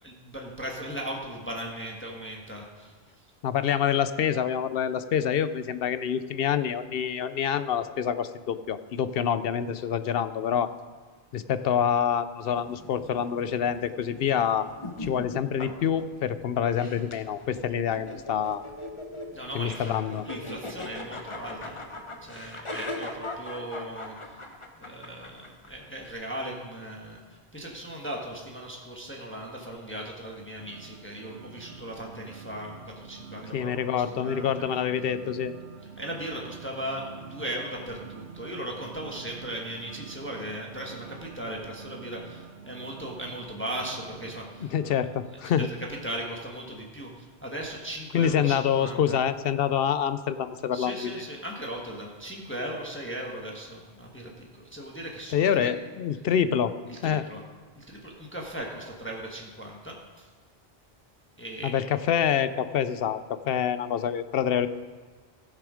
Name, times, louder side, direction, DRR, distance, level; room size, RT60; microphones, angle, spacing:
voice 1, 0.0-3.3 19.3-20.0 20.2-21.8 22.2-24.4 24.8-34.8 36.0-44.7 45.5-45.8 46.0-49.2 50.7-55.7 56.9-57.4 57.7-60.3 61.4-61.8, right 1 dB, 10° left, -1 dB, 1.3 m, -38 dB
voice 2, 3.4-10.7 11.3-14.7 15.0-18.6 19.5-20.2 33.5-35.5 44.7-45.7 48.1-51.1 55.3-56.7 57.0-57.2 61.6-63.2 63.5-64.7, left 8 dB, 65° left, 13 dB, 0.7 m, -26 dB
sound 1, 12.5-26.1, left 2 dB, 30° left, 1.0 m, -40 dB
sound 2, 30.6-45.3, right 6 dB, 90° right, 1.3 m, -46 dB
16.0 x 6.7 x 5.0 m, 1.4 s
omnidirectional pair, 1.1 m